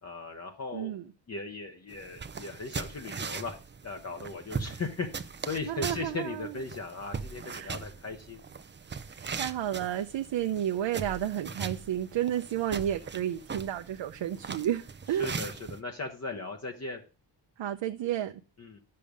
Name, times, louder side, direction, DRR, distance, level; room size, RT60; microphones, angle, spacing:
voice 1, 0.0-1.0 1.3-3.6 3.8-8.4 15.1-17.0 18.6-18.8, left 3 dB, 35° left, 1.1 m, -38 dB
voice 2, 0.7-1.0 5.7-6.5 7.4-7.8 9.4-15.3 17.6-18.4, right 11 dB, 90° right, 0.7 m, -31 dB
sound 1, 1.9-15.8, right 5 dB, 25° right, 0.5 m, -40 dB
11.0 x 6.7 x 5.2 m
wide cardioid pair, 175°, 43 cm